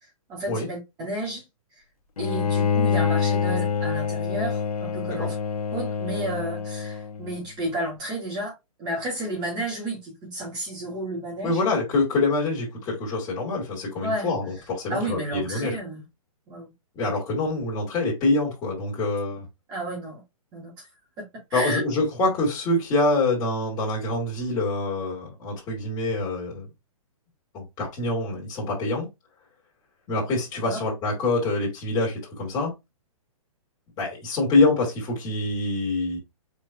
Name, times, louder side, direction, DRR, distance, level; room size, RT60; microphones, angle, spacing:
voice 1, 0.3-1.4 2.2-5.3 5.7-8.5 8.8-11.6 14.0-14.4 14.9-16.0 16.5-16.7 19.7-20.2 20.5-20.9 21.2-21.3 21.5-21.8 30.7-30.8, right 1 dB, 20° right, 2.3 m, -32 dB
Bowed string instrument, 2.2-7.4, left 6 dB, 90° left, 0.7 m, -26 dB
voice 2, 11.4-15.8 16.9-19.5 21.5-26.7 27.5-29.1 30.1-32.7 34.0-36.2, left 2 dB, 20° left, 2.6 m, -25 dB
4.6 x 4.1 x 2.6 m
hypercardioid pair, 150°, 19 cm